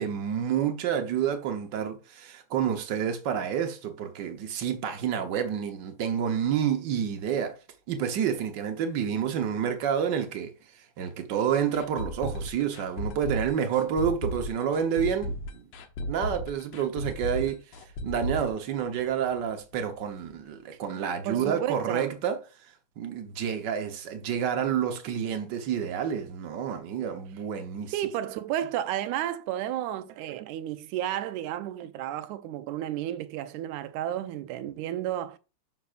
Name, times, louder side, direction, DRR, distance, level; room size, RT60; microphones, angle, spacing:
voice 1, 0.0-7.6 7.9-10.5 11.0-15.6 16.1-17.6 18.0-22.4 23.0-27.9, right 8 dB, 55° right, 1.2 m, -29 dB
sound 1, 11.7-19.5 19.7-19.8 20.2-20.3, equal, 65° left, 2.1 m, -34 dB
voice 2, 21.3-22.1 27.9-35.4, right 12 dB, 85° right, 2.1 m, -32 dB
10.0 x 6.2 x 2.5 m
omnidirectional pair, 3.4 m